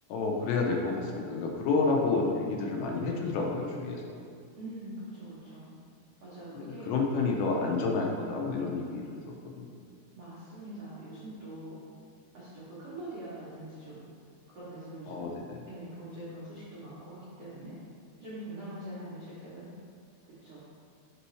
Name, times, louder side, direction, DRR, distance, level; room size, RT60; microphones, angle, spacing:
voice 1, 0.1-4.2 6.5-9.7 15.1-15.7, left 3 dB, 80° left, 0 dB, 2.9 m, -30 dB
voice 2, 4.6-5.6 6.2-6.9 10.1-11.8 12.3-14.0 14.5-15.4 15.7-17.7 18.2-19.7 20.4-20.6, right 1 dB, 75° right, -11 dB, 1.4 m, -43 dB
6.2 x 5.8 x 3.2 m, 2.3 s
omnidirectional pair, 5.0 m